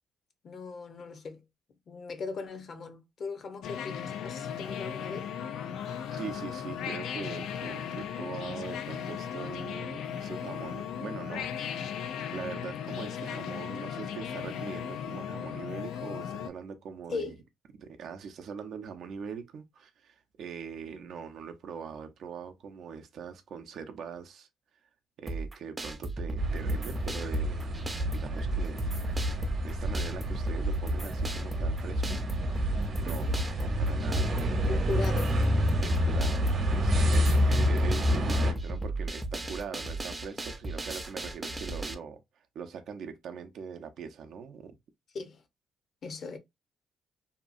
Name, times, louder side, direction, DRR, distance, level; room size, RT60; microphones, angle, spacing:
voice 1, 0.4-1.4 1.9-5.3 17.1-17.4 33.1-33.4 34.7-35.4 45.1-45.4 46.0-46.4, left 4 dB, 55° left, 0.7 m, -38 dB
sound 1, 3.6-16.5, left 8 dB, 80° left, 0.3 m, -37 dB
voice 2, 6.1-12.1 12.3-17.3 17.8-24.5 25.2-27.7 28.1-28.9 29.6-32.2 32.5-34.7 35.8-36.4 36.7-42.2 42.5-44.8, right 6 dB, 70° right, 0.5 m, -42 dB
sound 2, 25.3-41.9, right 2 dB, 20° right, 0.5 m, -36 dB
sound 3, 26.4-38.5, equal, 45° right, 0.8 m, -28 dB
2.8 x 2.3 x 2.5 m
cardioid pair, 90°, 0 cm